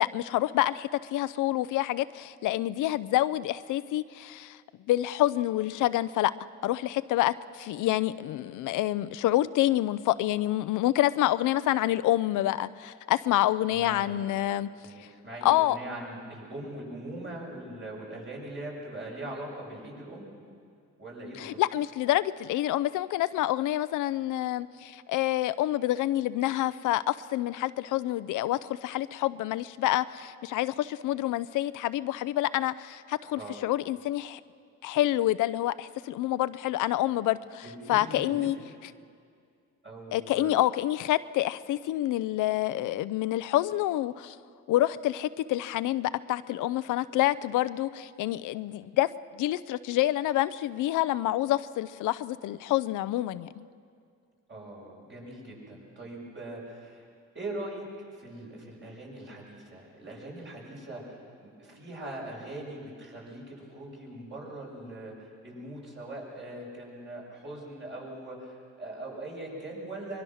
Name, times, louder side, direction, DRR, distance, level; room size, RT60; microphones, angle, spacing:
voice 1, 0.0-4.6 4.9-6.3 6.6-14.7 15.4-15.8 21.4-34.4 34.8-37.6 37.9-38.6 40.1-44.4 44.7-53.7, left 14 dB, 85° left, 15 dB, 0.6 m, -27 dB
voice 2, 13.7-14.5 14.8-20.3 21.0-21.6 33.3-33.6 37.6-38.5 39.8-40.5 54.5-57.1 57.3-70.2, right 1 dB, 40° right, -3 dB, 7.5 m, -41 dB
24.0 x 22.0 x 6.4 m, 2.3 s
cardioid pair, 90°, 30 cm